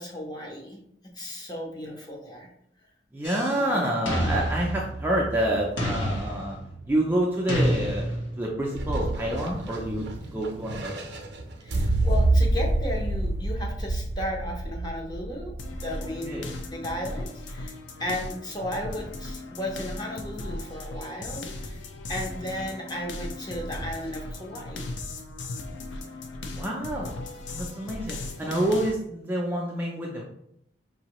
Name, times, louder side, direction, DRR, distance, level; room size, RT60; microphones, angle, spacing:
voice 1, 0.0-2.5 3.5-3.9 10.0-10.3 11.6-16.4 16.7-17.7 18.0-21.8 22.1-25.0 27.9-28.2, equal, 20° left, -1 dB, 0.8 m, -35 dB
voice 2, 3.1-6.6 6.9-11.1 16.2-16.5 26.5-27.1 27.5-30.2, right 1 dB, 10° right, -3 dB, 0.4 m, -28 dB
sound 1, 3.2-3.7 4.1-5.3 5.8-6.9 7.5-8.5, equal, 90° left, 1.2 m, -29 dB
sound 2, 8.8-16.7, right 2 dB, 60° right, 0.6 m, -28 dB
sound 3, 15.6-28.9, left 2 dB, 75° left, 0.5 m, -37 dB
4.8 x 2.7 x 3.0 m, 0.74 s
head